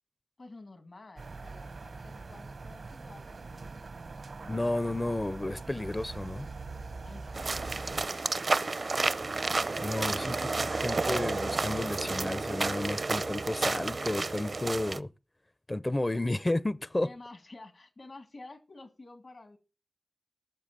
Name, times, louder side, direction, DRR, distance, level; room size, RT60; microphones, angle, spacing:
voice 1, 0.4-4.0 7.0-8.6 14.9-15.1 17.0-19.6, left 2 dB, 70° left, 2.2 m, -51 dB
sound 1, 1.2-8.1, right 3 dB, 80° right, 0.9 m, -43 dB
voice 2, 4.5-6.5 9.8-15.1 15.7-17.1, left 1 dB, 30° left, 0.5 m, -32 dB
sound 2, 7.3-15.0, right 3 dB, 60° right, 0.6 m, -31 dB
13.5 x 7.1 x 7.4 m
cardioid pair, 50°, 0 cm